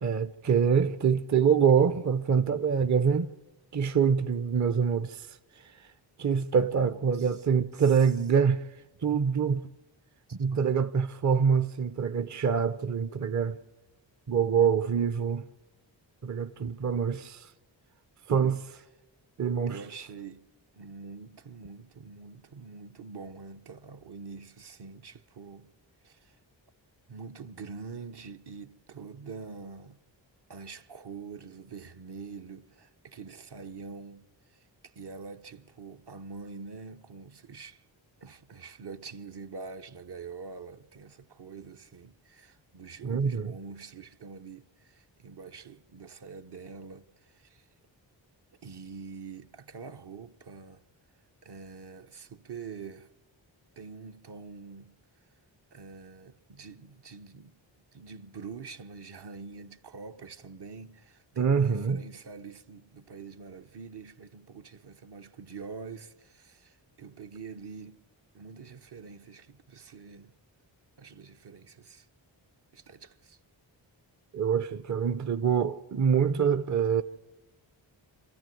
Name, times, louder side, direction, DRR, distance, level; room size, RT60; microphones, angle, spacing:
voice 1, 0.0-3.3 3.7-5.9 6.2-9.7 10.4-13.6 14.3-15.5 16.2-17.5 18.3-18.6 19.4-19.8 43.0-43.5 61.4-62.0 74.3-77.0, right 6 dB, 40° right, 0.7 m, -25 dB
voice 2, 6.7-7.3 10.5-10.9 12.2-12.3 18.3-18.6 19.7-20.5 20.7-25.7 26.0-26.4 27.1-30.0 30.5-37.8 38.2-47.7 48.6-50.8 51.4-53.1 53.8-55.0 55.7-57.6 57.9-68.0 68.3-70.3 71.0-72.1 72.7-73.4, right 5 dB, 55° right, 1.0 m, -45 dB
26.5 x 14.0 x 9.2 m
cardioid pair, 55°, 47 cm